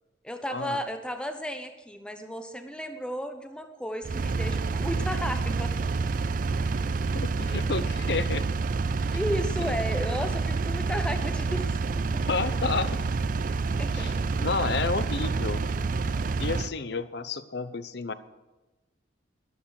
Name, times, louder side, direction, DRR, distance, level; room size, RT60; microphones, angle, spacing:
voice 1, 0.2-6.1 9.1-12.2 13.6-14.3, equal, 5° left, 6 dB, 1.1 m, -34 dB
Engine, 4.0-16.7, right 4 dB, 45° right, 0.4 m, -28 dB
voice 2, 7.1-8.5 12.2-13.0 13.9-15.6 16.4-18.1, left 4 dB, 55° left, 13 dB, 0.7 m, -30 dB
12.5 x 12.0 x 4.8 m, 1.1 s
head